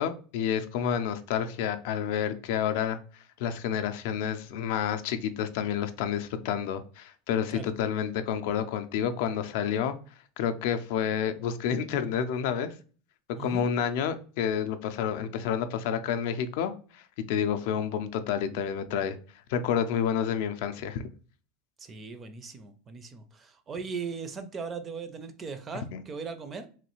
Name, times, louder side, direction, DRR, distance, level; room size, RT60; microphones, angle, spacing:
voice 1, 0.0-3.0 3.4-9.9 10.4-12.7 13.4-17.0 17.3-19.2 19.5-21.0 25.9-26.0, left 8 dB, 65° left, 9 dB, 0.4 m, -29 dB
voice 2, 13.4-13.7 21.8-26.7, right 5 dB, 25° right, 10 dB, 0.4 m, -38 dB
3.1 x 2.3 x 3.0 m, 0.39 s
supercardioid pair, 145°, 0 cm